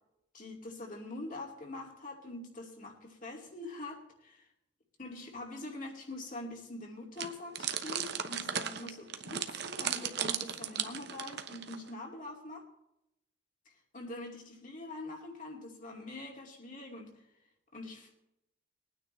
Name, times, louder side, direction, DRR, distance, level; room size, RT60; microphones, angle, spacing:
voice 1, 0.3-4.5 5.0-12.6 13.7-17.2 17.7-18.2, left 2 dB, 45° left, 0 dB, 2.6 m, -44 dB
sound 1, 7.2-11.9, right 8 dB, 60° right, 0.9 m, -36 dB
22.0 x 9.5 x 3.3 m, 0.86 s
head